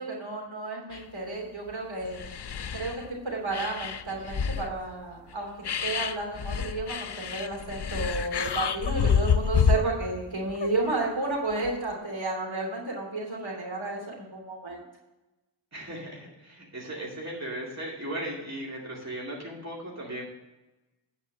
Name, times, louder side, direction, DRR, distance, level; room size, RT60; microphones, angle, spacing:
voice 1, 0.0-2.2 2.7-14.8, right 2 dB, 70° right, -2 dB, 3.1 m, -32 dB
sound 1, 0.9-1.0 1.7-1.8 2.0-3.1 3.5-4.7 5.3-5.4 5.6-10.1 10.5-10.9 11.6-12.0, left 6 dB, 55° left, 0.6 m, -28 dB
voice 2, 15.7-20.2, right 1 dB, 35° right, -3 dB, 2.5 m, -37 dB
9.7 x 4.7 x 7.2 m, 1.0 s
wide cardioid pair, 45°, 48 cm